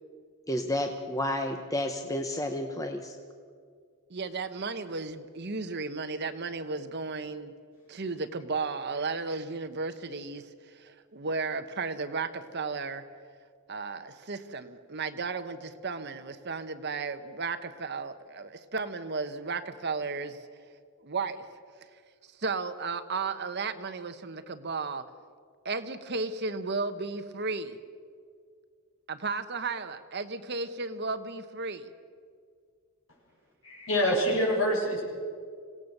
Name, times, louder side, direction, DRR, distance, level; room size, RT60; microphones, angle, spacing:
voice 1, 0.5-3.1, left 1 dB, 15° left, 4 dB, 0.9 m, -31 dB
voice 2, 4.1-7.5 7.9-10.4 10.8-13.0 13.7-20.4 21.0-21.4 22.4-25.0 25.6-27.8 29.1-31.9, right 4 dB, 50° right, 10 dB, 1.1 m, -34 dB
voice 3, 33.6-35.0, equal, 65° left, -2 dB, 7.1 m, -26 dB
26.5 x 18.0 x 6.7 m, 2.1 s
head